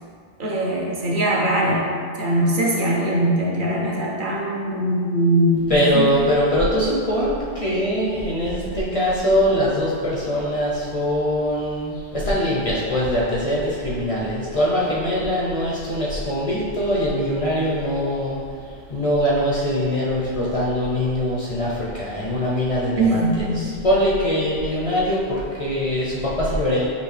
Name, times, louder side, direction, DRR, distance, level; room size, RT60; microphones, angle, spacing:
voice 1, 0.4-6.1 8.6-8.8 23.0-23.7, right 1 dB, 55° right, -4 dB, 0.7 m, -21 dB
voice 2, 5.7-26.9, equal, 45° left, -6 dB, 0.5 m, -22 dB
5.3 x 2.5 x 3.2 m, 2.2 s
omnidirectional pair, 1.1 m